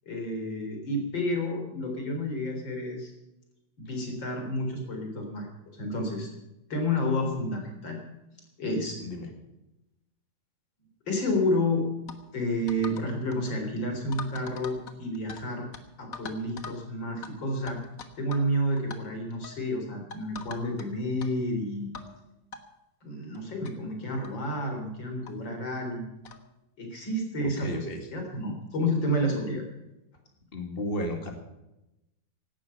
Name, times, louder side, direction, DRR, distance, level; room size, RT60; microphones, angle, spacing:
voice 1, 0.1-3.1 3.8-5.5 5.8-6.3 6.7-8.0 8.6-9.0 11.1-11.9 12.3-15.7 16.0-17.8 18.2-21.9 23.0-26.1 26.8-27.9 28.1-29.6, left 1 dB, 80° left, 3 dB, 4.6 m, -30 dB
sound 1, 12.1-12.2 12.7-13.1 13.3-13.5 14.1-15.4 15.7-15.8 16.1-16.8 17.2-17.3 17.7-18.5 18.8-19.0 19.4-19.6 20.1-20.9 21.2-21.3 21.9-22.1 22.5-22.6 23.3-23.4 23.6-23.7 24.2-24.4 25.3-25.4 26.2-26.4, left 5 dB, 50° left, 1.7 m, -42 dB
voice 2, 27.4-28.0 30.5-31.3, left 1 dB, 30° left, 4 dB, 2.5 m, -33 dB
17.0 x 12.0 x 5.7 m, 0.93 s
omnidirectional pair, 2.0 m